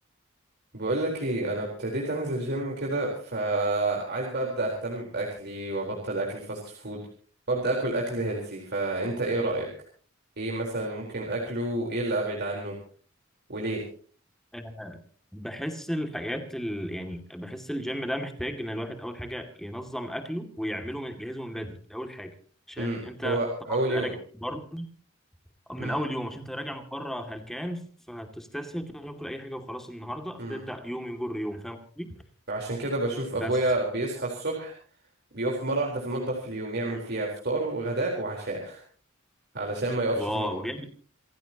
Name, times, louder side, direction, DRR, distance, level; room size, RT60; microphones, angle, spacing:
voice 1, 0.7-7.0 7.5-9.7 10.4-12.7 13.5-13.8 22.8-24.1 25.8-26.0 30.4-30.6 32.5-34.7 35.3-38.8 39.5-40.5, right 2 dB, 55° right, -1 dB, 4.1 m, -29 dB
voice 2, 14.5-15.0 15.3-22.3 22.7-23.4 23.7-24.2 24.4-24.9 25.7-32.1 33.3-33.6 40.2-40.9, equal, ahead, 5 dB, 2.4 m, -34 dB
28.0 x 15.5 x 2.9 m, 0.42 s
head